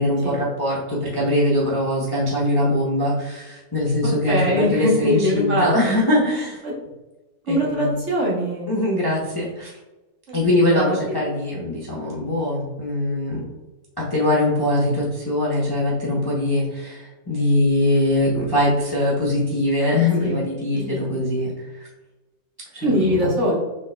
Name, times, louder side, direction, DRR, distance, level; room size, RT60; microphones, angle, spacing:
voice 1, 0.0-6.6 7.5-8.0 8.7-9.8 10.3-13.5 14.0-21.9 22.7-23.3, left 1 dB, 20° left, -6 dB, 0.7 m, -22 dB
voice 2, 4.3-5.9 6.6-6.7 7.4-8.7 10.3-11.0 11.5-11.6 20.2-20.5 21.1-21.2 22.8-23.6, equal, 50° right, -3 dB, 1.3 m, -22 dB
6.1 x 3.6 x 2.2 m, 1.1 s
omnidirectional pair, 1.7 m